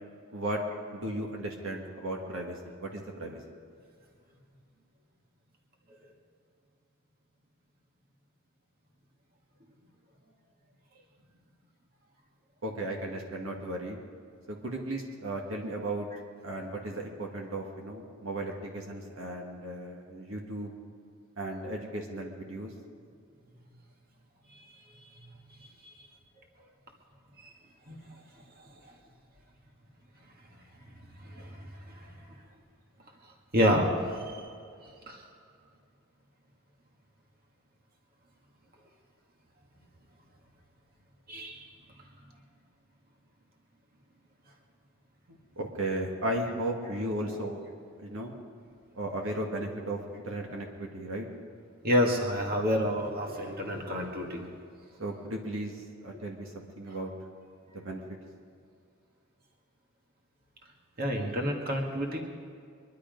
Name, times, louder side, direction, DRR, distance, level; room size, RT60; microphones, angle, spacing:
voice 1, 0.9-3.4 12.6-14.0 14.5-16.1 16.4-20.7 21.4-22.7 45.6-47.7 48.0-48.3 49.0-51.3 55.0-57.1 57.7-58.0, right 1 dB, 75° right, 0 dB, 1.8 m, -35 dB
voice 2, 25.6-25.9 27.4-27.5 27.9-28.0 28.6-28.7 31.2-32.1 33.5-34.5 35.1-35.3 41.3-41.7 51.8-54.5 61.0-62.2, equal, 50° right, 1 dB, 1.9 m, -29 dB
23.0 x 11.5 x 5.3 m, 2.3 s
head